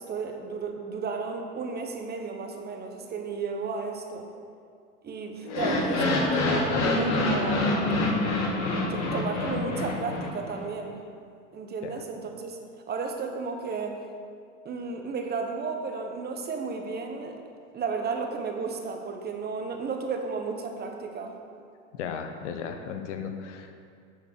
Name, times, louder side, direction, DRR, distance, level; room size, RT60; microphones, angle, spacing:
voice 1, 0.0-4.3 5.0-7.8 8.9-11.0 11.5-12.6 12.9-14.0 14.6-17.4 17.7-21.4, right 4 dB, 25° right, 4 dB, 1.1 m, -33 dB
sound 1, 5.4-10.6, left 2 dB, 45° left, 1.6 m, -26 dB
voice 2, 21.9-23.7, left 6 dB, 75° left, 6 dB, 1.0 m, -35 dB
8.4 x 4.8 x 6.7 m, 2.3 s
hypercardioid pair, 100°, 36 cm